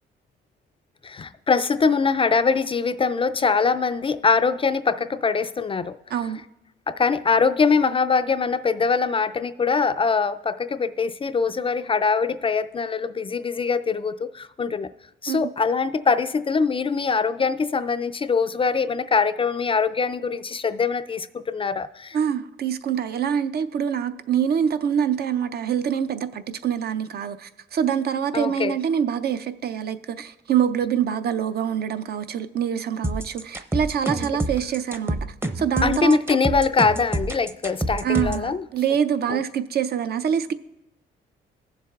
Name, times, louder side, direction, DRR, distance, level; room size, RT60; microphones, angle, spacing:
voice 1, 1.0-6.0 6.9-14.9 15.2-22.2 28.3-28.8 34.1-34.2 35.8-38.6 39.3-39.4, left 5 dB, 25° left, 11 dB, 0.3 m, -23 dB
voice 2, 6.1-6.4 15.3-15.4 22.1-35.2 35.6-36.6 38.0-40.5, right 8 dB, 55° right, 11 dB, 0.5 m, -25 dB
sound 1, 33.0-38.5, right 1 dB, 10° right, 0.6 m, -27 dB
17.0 x 7.3 x 2.4 m, 0.92 s
cardioid pair, 90°, 20 cm